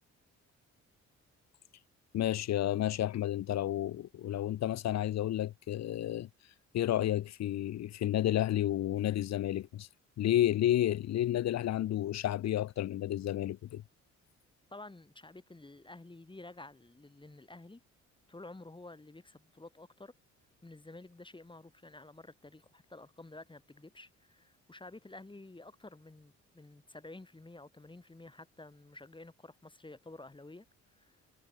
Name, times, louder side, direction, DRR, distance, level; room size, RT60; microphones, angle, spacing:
voice 1, 2.1-6.3 6.7-9.9 10.2-13.8, left 12 dB, 60° left, 0.8 m, -31 dB
voice 2, 14.7-17.8 18.3-20.1 20.6-31.2, left 2 dB, 15° left, 6.6 m, -51 dB
cardioid pair, 90°, 30 cm